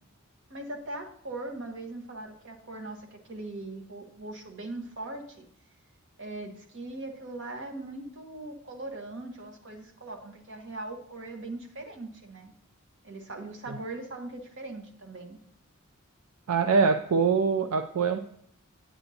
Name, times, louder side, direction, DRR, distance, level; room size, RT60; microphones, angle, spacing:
voice 1, 0.5-5.4 6.2-12.5 13.0-15.4, right 2 dB, 60° right, 2 dB, 1.2 m, -40 dB
voice 2, 16.5-18.2, right 5 dB, 80° right, 7 dB, 0.4 m, -24 dB
9.1 x 7.9 x 2.8 m, 0.67 s
head